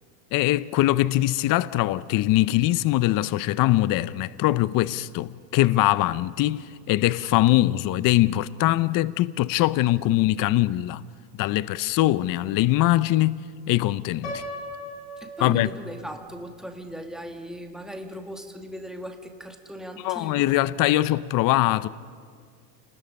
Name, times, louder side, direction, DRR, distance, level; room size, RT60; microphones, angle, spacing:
voice 1, 0.3-11.0 11.4-14.4 15.4-15.7 20.0-21.9, left 16 dB, 45° left, 0.6 m, -22 dB
Piano, 14.2-16.2, left 1 dB, 80° left, 5.0 m, -38 dB
voice 2, 15.2-20.5, right 1 dB, ahead, 2.1 m, -38 dB
29.0 x 20.0 x 5.3 m
supercardioid pair, 105°, 49 cm